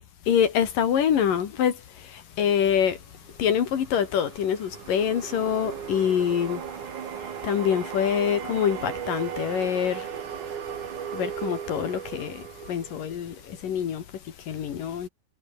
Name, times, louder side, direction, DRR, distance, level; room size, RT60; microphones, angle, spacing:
voice 1, 0.3-3.0 3.4-6.7 7.1-10.1 11.1-15.1, left 8 dB, 55° left, 3.2 m, -26 dB
sound 1, 3.3-13.6, right 8 dB, 50° right, 3.3 m, -36 dB
omnidirectional pair, 5.1 m